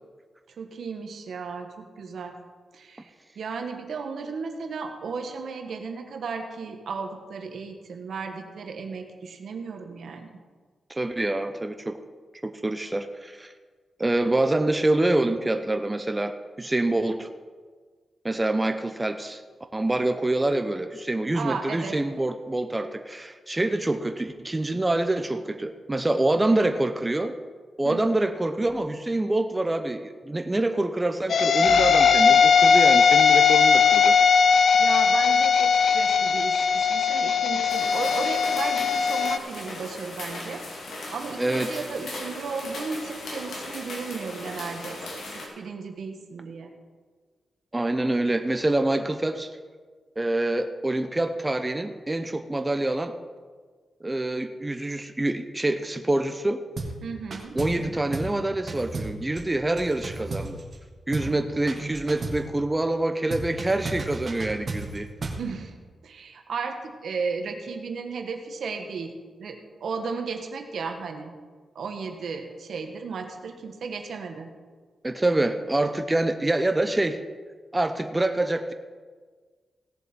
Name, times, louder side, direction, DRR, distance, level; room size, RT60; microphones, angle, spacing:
voice 1, 0.6-2.3 2.7-10.4 21.3-22.0 26.4-26.7 27.8-28.2 34.7-40.6 41.1-46.7 57.0-57.6 61.2-61.6 65.4-65.7 66.0-69.1 69.4-71.3 71.7-74.5, right 5 dB, 80° right, 5 dB, 1.3 m, -35 dB
voice 2, 10.9-12.0 12.4-13.5 14.0-16.3 16.6-17.3 18.2-19.4 19.7-27.4 27.8-34.2 41.4-41.8 47.7-49.5 50.2-53.2 54.0-56.6 57.5-60.6 61.1-65.1 75.0-77.2 77.7-78.7, right 2 dB, 20° right, 7 dB, 0.7 m, -26 dB
sound 1, 31.3-39.4, left 6 dB, 65° left, 0.4 m, -19 dB
sound 2, 37.7-45.5, left 2 dB, 80° left, 2.4 m, -38 dB
sound 3, 56.8-57.0 57.3-57.9 58.1-58.4 58.7-60.8 61.1-61.4 61.7-62.5 63.3-65.5, right 3 dB, 50° right, 1.6 m, -34 dB
17.0 x 7.2 x 4.4 m, 1.5 s
cardioid pair, 80°, 0 cm